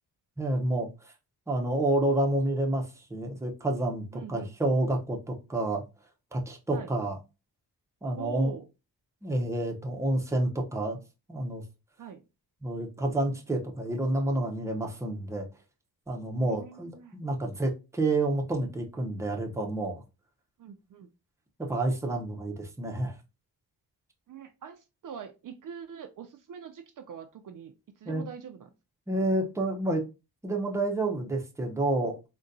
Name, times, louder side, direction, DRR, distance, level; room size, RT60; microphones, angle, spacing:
voice 1, 0.4-1.1 1.5-5.8 6.3-7.2 8.0-8.5 9.2-11.0 11.3-11.6 12.6-15.5 16.1-20.0 21.6-23.2 28.1-28.2 29.1-30.0 30.4-32.3, right 1 dB, 5° right, 0.6 m, -29 dB
voice 2, 4.1-4.5 6.7-6.9 8.2-8.6 12.0-12.3 16.4-17.2 20.6-21.1 24.3-28.7, right 8 dB, 55° right, 0.4 m, -43 dB
3.9 x 2.2 x 2.5 m
cardioid pair, 100°, 40 cm